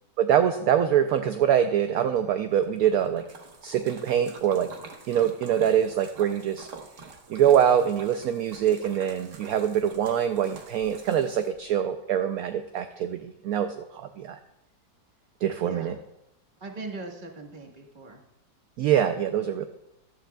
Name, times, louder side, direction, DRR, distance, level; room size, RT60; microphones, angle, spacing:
voice 1, 0.2-3.2 3.6-4.7 5.1-6.7 7.3-14.4 15.4-15.9 18.8-19.7, right 9 dB, 70° right, 7 dB, 0.9 m, -24 dB
Splash splatter, 2.6-11.8, right 4 dB, 50° right, 1.3 m, -47 dB
voice 2, 15.6-16.0 16.6-18.2, right 3 dB, 30° right, 1 dB, 1.4 m, -40 dB
14.0 x 11.5 x 2.3 m, 0.87 s
omnidirectional pair, 1.9 m